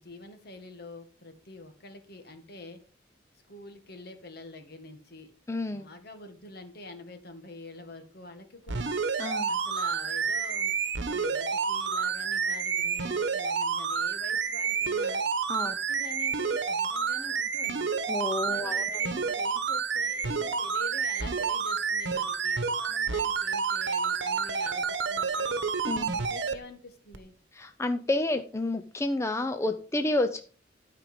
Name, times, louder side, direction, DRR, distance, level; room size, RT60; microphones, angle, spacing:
voice 1, 0.0-2.8 3.5-5.3 5.7-8.9 9.5-10.7 11.1-15.2 15.6-17.9 18.4-25.6 26.2-27.3, left 2 dB, 60° left, 7 dB, 1.7 m, -46 dB
voice 2, 5.5-5.9 9.2-9.5 15.5-15.7 18.1-19.1 25.9-26.1 27.5-30.4, left 2 dB, 15° left, 8 dB, 0.5 m, -30 dB
sound 1, 8.7-26.5 27.1-27.2, right 5 dB, 75° right, 1.0 m, -29 dB
12.5 x 5.0 x 5.1 m, 0.42 s
head